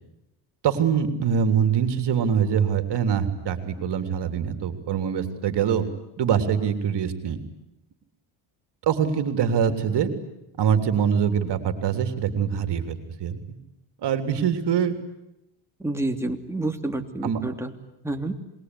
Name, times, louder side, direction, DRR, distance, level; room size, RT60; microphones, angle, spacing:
voice 1, 0.6-5.9 6.2-7.4 8.8-10.1 10.6-13.6 14.0-15.0 17.2-17.4, right 7 dB, 60° right, 8 dB, 3.5 m, -24 dB
voice 2, 15.8-17.7 18.0-18.3, right 2 dB, 5° right, 4 dB, 3.1 m, -28 dB
27.5 x 22.0 x 9.9 m, 0.90 s
cardioid pair, 100°, 47 cm